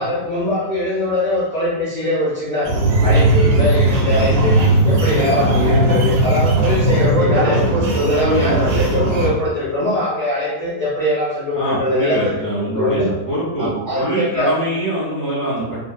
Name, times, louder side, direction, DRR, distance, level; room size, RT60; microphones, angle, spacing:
voice 1, 0.0-2.7 3.0-4.5 4.8-7.6 8.0-13.1 13.6-14.5, left 1 dB, 45° left, -10 dB, 0.7 m, -22 dB
sound 1, 2.6-9.3, right 1 dB, 70° right, 0.9 m, -16 dB
voice 2, 11.5-15.8, right 1 dB, 15° right, -9 dB, 0.7 m, -23 dB
2.7 x 2.4 x 2.2 m, 1.0 s
omnidirectional pair, 1.6 m